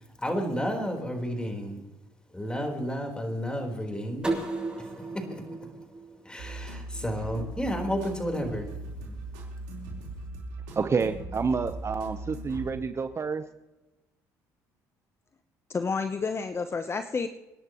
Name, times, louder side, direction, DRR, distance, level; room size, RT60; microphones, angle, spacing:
voice 1, 0.2-1.8 2.3-4.3 4.8-4.9 5.1-5.4 6.2-8.7, equal, 10° left, 4.1 m, -31 dB
sound 1, 4.2-7.0, right 2 dB, 10° right, 6.6 m, -35 dB
sound 2, 6.4-13.2, right 2 dB, 85° right, 4.2 m, -39 dB
voice 2, 10.8-13.5, right 5 dB, 35° right, 0.9 m, -28 dB
voice 3, 15.7-17.3, left 4 dB, 30° left, 0.9 m, -30 dB
28.0 x 10.5 x 3.1 m
supercardioid pair, 70°, 8 cm